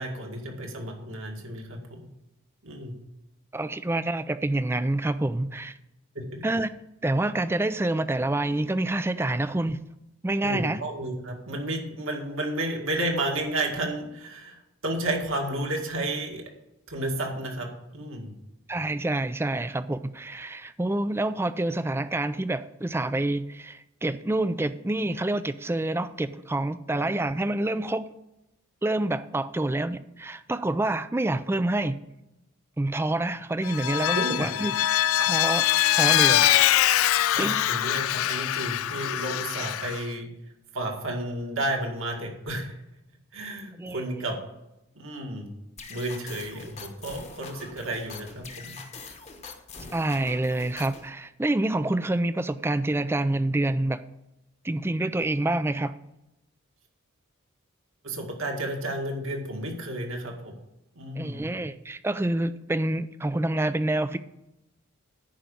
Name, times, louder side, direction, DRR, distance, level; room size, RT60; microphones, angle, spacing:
voice 1, 0.0-2.0 2.6-2.9 6.2-6.4 10.4-16.4 16.9-18.3 26.9-27.0 34.1-34.5 37.3-40.3 40.7-42.8 43.3-44.4 45.0-45.5 45.9-48.8 58.0-60.5 61.0-61.5, right 1 dB, 65° right, 2.0 m, -32 dB
voice 2, 3.5-5.8 6.4-6.7 7.0-9.8 10.2-10.8 18.7-28.1 28.8-32.0 32.8-34.8 35.2-35.7 36.0-36.5 37.4-37.7 43.8-44.1 49.9-54.0 54.6-56.0 61.2-64.2, right 2 dB, 10° right, 0.3 m, -27 dB
Vehicle, 33.6-40.0, left 13 dB, 75° left, 0.3 m, -23 dB
sound 1, 45.8-51.1, left 4 dB, 30° left, 1.0 m, -43 dB
10.5 x 5.1 x 6.9 m
head